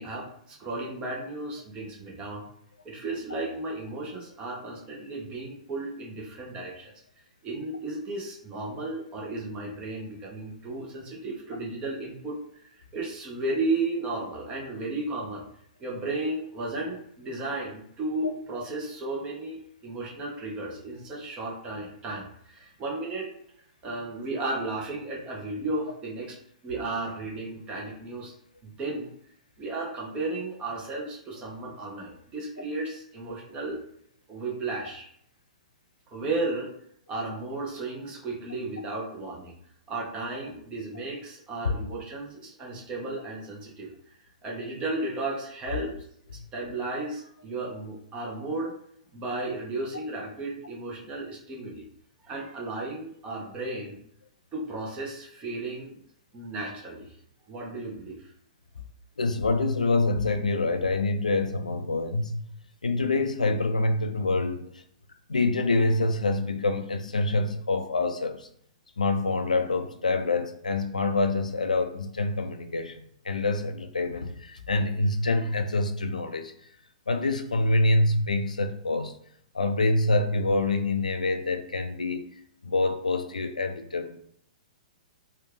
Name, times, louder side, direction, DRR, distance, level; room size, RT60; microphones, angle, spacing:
voice 1, 0.0-2.4 2.8-6.9 7.4-15.4 15.8-23.3 23.8-26.4 26.6-28.3 28.6-29.1 29.6-33.8 34.3-35.1 36.1-36.7 37.1-39.5 39.9-43.9 44.4-45.9 46.3-48.7 49.1-51.9 52.2-54.0 54.5-56.0 56.3-57.2 57.5-58.3, right 2 dB, 25° right, 0.9 m, -34 dB
voice 2, 59.2-62.4 62.8-64.6 65.3-68.5 69.0-76.5 77.1-79.2 79.5-82.2 82.6-84.2, left 2 dB, 80° left, 0.4 m, -26 dB
3.3 x 2.4 x 3.3 m
figure-of-eight pair, 115°, 4 cm